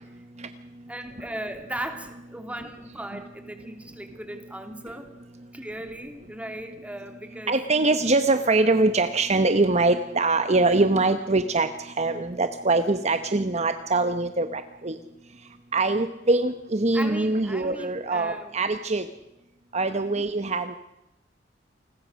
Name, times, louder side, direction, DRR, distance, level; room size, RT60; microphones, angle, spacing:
voice 1, 0.9-5.1 5.5-7.6 16.9-18.5 20.1-20.2, right 1 dB, 10° right, 6 dB, 2.9 m, -37 dB
voice 2, 7.5-14.9 15.7-19.1 19.7-20.7, right 3 dB, 40° right, 9 dB, 1.0 m, -23 dB
29.0 x 21.5 x 6.4 m, 0.93 s
head